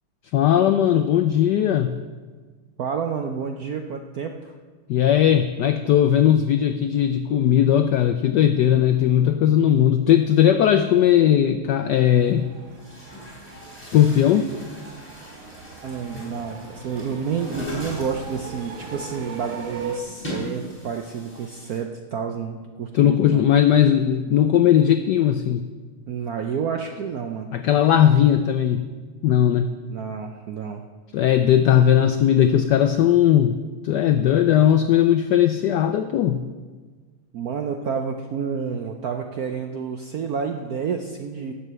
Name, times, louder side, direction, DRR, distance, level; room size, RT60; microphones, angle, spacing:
voice 1, 0.3-2.0 4.9-12.5 13.8-14.5 22.9-25.6 27.5-28.9 29.2-29.8 31.1-33.6 33.8-36.4, left 10 dB, 80° left, 9 dB, 0.9 m, -18 dB
voice 2, 2.8-4.5 15.8-23.4 26.1-27.6 29.9-30.8 37.3-41.5, right 6 dB, 70° right, 5 dB, 0.8 m, -29 dB
sound 1, 11.8-20.0, right 5 dB, 50° right, 1.2 m, -39 dB
Chatter / Gurgling / Tap, 11.9-12.0 12.7-21.8, equal, 20° left, 3.6 m, -39 dB
12.0 x 6.6 x 8.0 m, 1.4 s
omnidirectional pair, 2.4 m